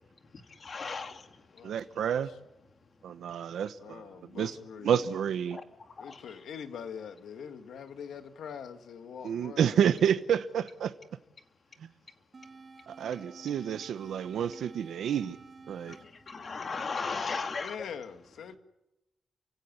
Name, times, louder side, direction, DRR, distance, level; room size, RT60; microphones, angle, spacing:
voice 1, 0.6-1.3 5.5-5.6 6.0-6.2 15.9-17.7, left 4 dB, 35° left, 2.0 m, -36 dB
voice 2, 1.6-2.3 3.0-4.0 4.3-4.5 4.8-5.6 9.2-10.9 12.9-15.4 15.7-16.0, right 8 dB, 75° right, 1.0 m, -29 dB
voice 3, 3.8-5.1 6.0-10.0 17.5-18.6, left 7 dB, 75° left, 2.1 m, -43 dB
sound 1, 12.3-17.4, right 4 dB, 30° right, 2.1 m, -52 dB
29.0 x 17.0 x 9.7 m
wide cardioid pair, 165°, 0 cm